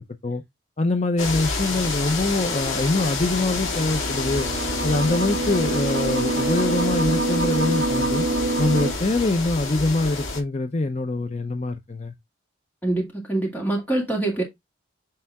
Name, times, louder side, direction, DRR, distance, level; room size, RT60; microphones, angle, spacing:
voice 1, 0.8-4.5 4.8-8.3 8.6-12.1, left 2 dB, 35° left, 0.6 m, -24 dB
sound 1, 1.2-10.4, left 3 dB, 80° left, 2.6 m, -29 dB
sound 2, 3.7-8.9, right 2 dB, 55° right, 1.9 m, -26 dB
voice 2, 12.8-14.4, right 2 dB, 10° left, 2.1 m, -24 dB
8.6 x 3.4 x 3.5 m
head